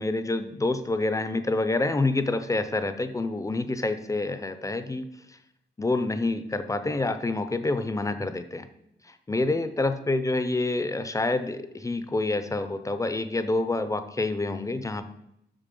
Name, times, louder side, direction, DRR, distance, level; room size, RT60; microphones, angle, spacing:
voice 1, 0.0-5.1 5.8-8.7 9.3-15.1, left 2 dB, 15° left, 10 dB, 0.5 m, -27 dB
7.5 x 6.5 x 5.3 m, 0.79 s
wide cardioid pair, 180°, 19 cm